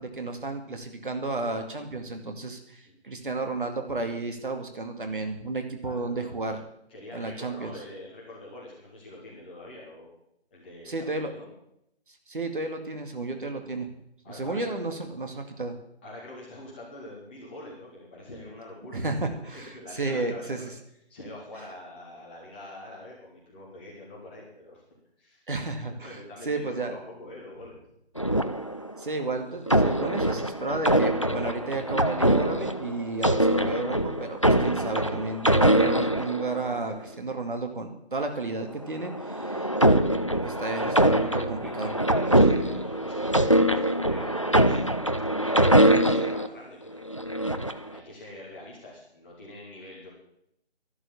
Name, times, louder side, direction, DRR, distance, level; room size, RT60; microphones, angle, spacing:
voice 1, 0.0-6.6 7.1-7.7 10.8-11.3 12.1-13.9 14.3-15.8 18.9-20.7 25.5-26.9 29.0-39.6 40.4-41.9, right 2 dB, 50° right, 5 dB, 2.3 m, -32 dB
voice 2, 5.8-6.2 6.9-10.1 10.5-11.5 14.2-14.8 16.0-19.0 19.5-20.7 21.1-24.8 25.2-25.4 25.9-27.8 37.0-37.2 39.4-39.6 41.0-45.0 45.3-47.5 47.9-50.1, left 1 dB, 10° left, -5 dB, 1.9 m, -44 dB
sound 1, 28.2-29.1 29.7-36.9 38.8-46.5 47.1-47.9, right 1 dB, 30° left, 0.5 m, -23 dB
12.5 x 12.0 x 7.1 m, 0.77 s
figure-of-eight pair, 165°, 33 cm